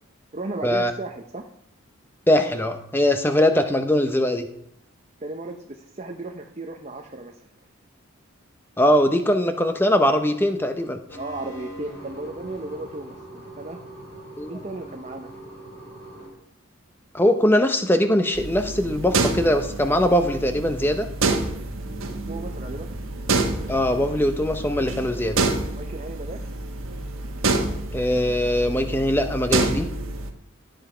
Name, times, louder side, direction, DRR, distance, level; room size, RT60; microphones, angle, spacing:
voice 1, 0.3-1.5 5.2-7.4 11.1-13.8 14.5-15.3 22.1-23.0 25.7-26.5, right 2 dB, 30° right, 3 dB, 0.7 m, -35 dB
voice 2, 2.3-4.5 8.8-11.0 14.4-14.5 17.1-21.1 23.7-25.4 27.9-29.9, left 1 dB, 10° left, 7 dB, 0.7 m, -21 dB
sound 1, 11.1-16.3, right 1 dB, 65° left, 5.5 m, -41 dB
sound 2, 18.3-30.3, right 3 dB, 70° right, 1.4 m, -28 dB
13.0 x 7.7 x 5.0 m, 0.76 s
head